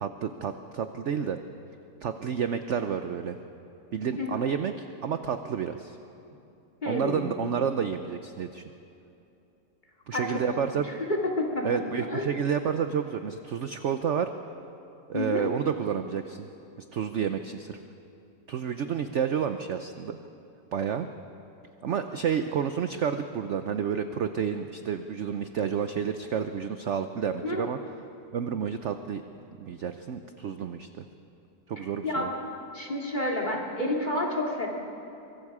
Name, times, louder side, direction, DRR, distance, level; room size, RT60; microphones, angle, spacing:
voice 1, 0.0-1.4 2.0-3.4 3.9-6.0 6.9-8.6 10.1-10.9 11.6-14.3 15.1-16.5 16.9-17.8 18.5-20.2 20.7-21.1 21.8-27.8 28.3-29.2 29.6-31.0 31.7-32.3, right 7 dB, 60° right, 8 dB, 0.7 m, -30 dB
voice 2, 6.8-7.3 10.1-10.4 11.1-11.6 12.1-12.3 15.1-15.5 27.4-27.6 32.0-32.4 32.7-34.7, left 1 dB, 25° left, -1 dB, 2.7 m, -29 dB
24.0 x 23.5 x 4.9 m, 2.8 s
omnidirectional pair, 1.9 m